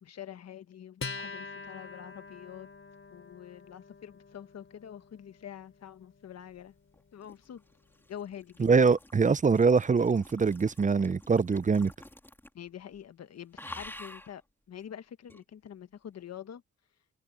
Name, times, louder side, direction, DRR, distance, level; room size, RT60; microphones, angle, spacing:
voice 1, 0.0-2.7 3.1-6.7 7.1-7.6 8.1-8.7 12.5-14.4 14.7-16.6, left 9 dB, 55° left, 1.4 m, -46 dB
Acoustic guitar, 1.0-7.8, left 4 dB, 40° left, 4.0 m, -46 dB
sound 1, 6.9-12.7 12.9-13.2 13.5-14.4 15.3-15.4, left 1 dB, 5° left, 3.0 m, -49 dB
voice 2, 8.6-11.9, right 5 dB, 25° right, 0.7 m, -23 dB
cardioid pair, 70°, 30 cm